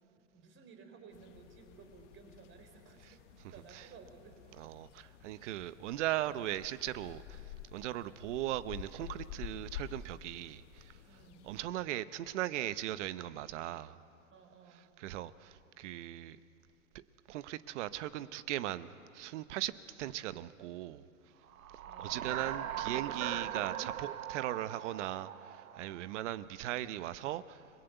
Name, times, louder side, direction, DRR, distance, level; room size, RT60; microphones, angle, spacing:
voice 1, 0.3-4.4 11.1-11.5 14.3-15.0 21.9-22.5, right 5 dB, 30° right, 4.4 m, -56 dB
sound 1, 1.1-11.6, left 10 dB, 60° left, 1.2 m, -50 dB
voice 2, 4.6-14.0 14.7-16.4 17.3-21.1 22.0-27.7, right 14 dB, 60° right, 1.0 m, -39 dB
sound 2, 21.5-26.2, right 10 dB, 85° right, 1.1 m, -40 dB
29.5 x 22.0 x 8.2 m
hypercardioid pair, 120°, 40 cm